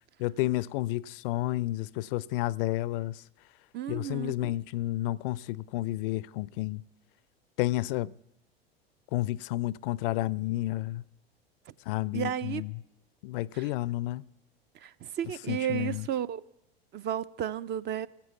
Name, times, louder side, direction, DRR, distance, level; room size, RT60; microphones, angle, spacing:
voice 1, 0.2-3.2 3.9-6.8 7.6-8.1 9.1-11.0 11.9-12.7 13.2-14.3 15.5-16.1, left 17 dB, 60° left, 0.4 m, -31 dB
voice 2, 3.7-4.5 12.1-12.6 13.5-13.6 14.7-16.5 16.9-18.1, right 10 dB, 35° right, 0.5 m, -33 dB
16.0 x 7.6 x 8.1 m
hypercardioid pair, 85°, 31 cm